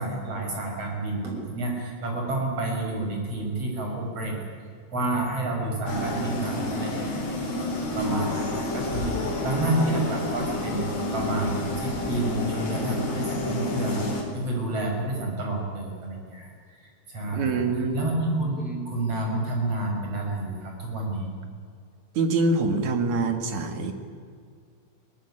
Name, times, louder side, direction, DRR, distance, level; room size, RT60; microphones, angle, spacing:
voice 1, 0.0-4.4 4.9-7.3 7.9-16.5 16.8-17.6 17.9-21.3, right 2 dB, 35° right, 0 dB, 6.6 m, -29 dB
sound 1, 5.9-14.2, left 2 dB, 55° left, 6.1 m, -29 dB
voice 2, 17.3-18.1 22.1-23.9, right 3 dB, 50° right, 6 dB, 2.8 m, -25 dB
23.0 x 18.0 x 9.9 m, 2.2 s
omnidirectional pair, 4.9 m